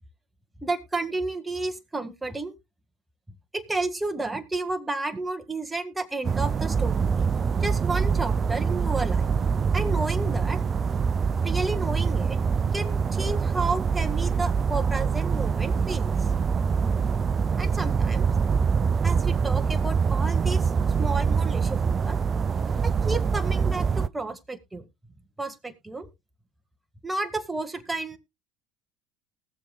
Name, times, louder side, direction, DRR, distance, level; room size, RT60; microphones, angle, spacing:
voice 1, 0.6-2.5 3.3-7.3 7.6-9.3 9.7-10.6 11.4-12.4 12.7-16.3 17.5-18.3 19.0-20.7 21.0-22.2 22.8-24.8 25.4-26.1 27.0-28.2, right 3 dB, 15° right, 9 dB, 1.7 m, -31 dB
sound 1, 6.2-24.1, right 6 dB, 35° right, 0.4 m, -24 dB
19.5 x 7.1 x 2.3 m, 0.24 s
hypercardioid pair, 75°, 0 cm